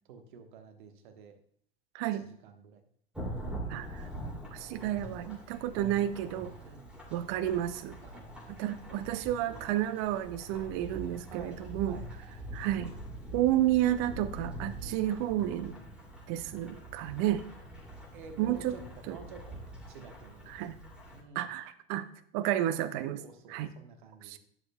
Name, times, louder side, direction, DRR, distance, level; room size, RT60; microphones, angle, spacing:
voice 1, 0.1-1.4 2.1-2.8 6.6-6.9 8.0-8.4 11.3-12.1 13.5-13.7 14.9-15.1 18.1-20.7 21.1-21.5 23.2-24.4, right 5 dB, 55° right, 6 dB, 1.3 m, -51 dB
voice 2, 1.9-2.3 3.7-4.0 4.5-6.5 7.1-8.0 8.5-12.0 12.5-12.9 13.3-15.7 16.3-17.4 18.4-18.7 19.1-19.2 20.5-20.8 21.3-22.1 22.3-23.2 23.5-23.7 24.2-24.4, right 13 dB, 40° right, 12 dB, 0.7 m, -31 dB
Thunderstorm / Rain, 3.1-21.2, right 1 dB, 5° right, 2.6 m, -44 dB
11.5 x 8.0 x 2.3 m, 0.65 s
figure-of-eight pair, 85°, 29 cm